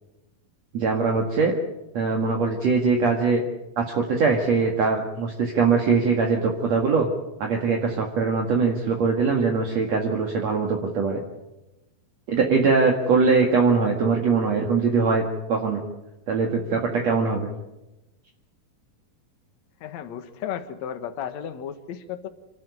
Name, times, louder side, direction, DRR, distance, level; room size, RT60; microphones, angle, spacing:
voice 1, 0.7-1.5 1.9-3.4 3.8-7.1 7.4-11.2 12.3-15.2 15.5-15.8 16.3-17.5, right 4 dB, 50° right, 1 dB, 2.8 m, -22 dB
voice 2, 19.8-22.3, left 9 dB, 60° left, 9 dB, 2.3 m, -34 dB
27.5 x 12.0 x 9.8 m, 0.98 s
omnidirectional pair, 4.1 m